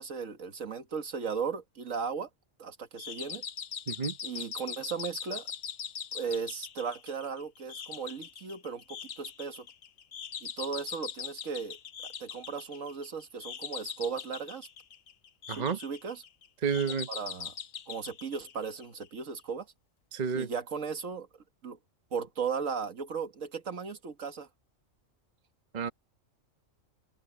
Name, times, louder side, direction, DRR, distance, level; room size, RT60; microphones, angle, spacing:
voice 1, 0.0-2.3 2.6-3.4 4.2-5.5 6.1-9.7 10.4-11.8 12.0-14.7 15.6-16.2 17.1-17.5 17.9-19.7 20.3-21.3 21.6-21.8 22.1-24.5, right 6 dB, 85° right, 2.0 m, -36 dB
sound 1, 3.0-19.1, left 7 dB, 55° left, 1.1 m, -41 dB
voice 2, 3.9-4.2 15.5-15.8 16.6-17.1 20.1-20.5 25.7-25.9, right 6 dB, 35° right, 1.1 m, -30 dB
open air
omnidirectional pair, 1.3 m